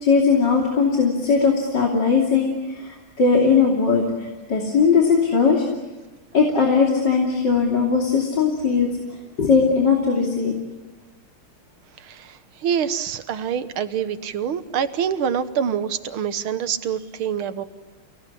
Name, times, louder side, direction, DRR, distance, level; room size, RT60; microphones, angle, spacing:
voice 1, 0.0-5.6 6.3-8.9 9.4-10.5, left 5 dB, 55° left, 0 dB, 3.5 m, -19 dB
voice 2, 12.0-17.6, right 8 dB, 80° right, 11 dB, 2.0 m, -26 dB
30.0 x 18.0 x 10.0 m, 1.2 s
omnidirectional pair, 2.3 m